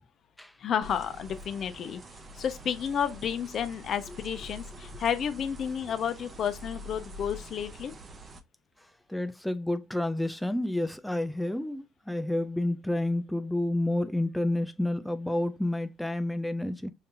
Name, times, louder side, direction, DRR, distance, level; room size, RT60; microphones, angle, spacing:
voice 1, 0.6-2.0 2.3-7.9, left 8 dB, 55° left, 0.7 m, -31 dB
sound 1, 0.8-8.4, equal, 35° right, 0.8 m, -45 dB
voice 2, 8.8-16.9, left 1 dB, 5° left, 0.3 m, -30 dB
5.2 x 2.7 x 2.5 m
cardioid pair, 95°, 0 cm